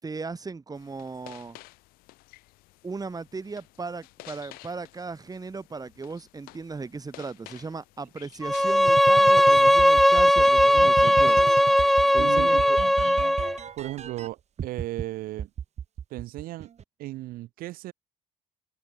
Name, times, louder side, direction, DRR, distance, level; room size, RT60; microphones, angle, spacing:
voice 1, 0.0-1.6 2.8-11.5 12.1-12.6, right 4 dB, 25° right, 5.3 m, -37 dB
sound 1, 0.7-11.2, left 21 dB, 85° left, 7.0 m, -51 dB
Bowed string instrument, 8.4-13.6, equal, ahead, 0.6 m, -19 dB
sound 2, 8.9-14.3 14.6-15.0 15.4-16.8, right 8 dB, 50° right, 4.8 m, -34 dB
voice 2, 12.2-12.8 13.8-15.5 16.1-16.7 17.0-17.9, right 16 dB, 80° right, 3.1 m, -35 dB
cardioid pair, 90°, 15 cm